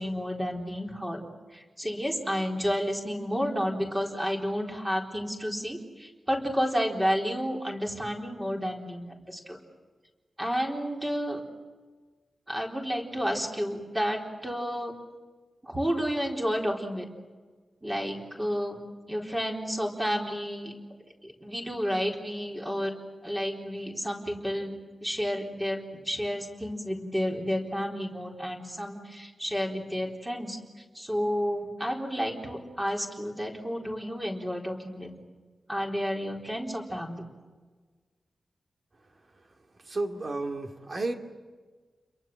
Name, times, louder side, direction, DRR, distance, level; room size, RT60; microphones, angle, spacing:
voice 1, 0.0-9.6 10.4-11.4 12.5-14.9 15.6-17.1 17.8-18.8 19.1-20.7 21.2-22.9 23.2-24.7 25.0-30.6 30.9-35.1 35.7-37.3, equal, 10° right, 4.1 m, -31 dB
voice 2, 39.9-41.1, right 2 dB, 35° right, 2.6 m, -32 dB
30.0 x 23.0 x 7.7 m
wide cardioid pair, 165°, 0 cm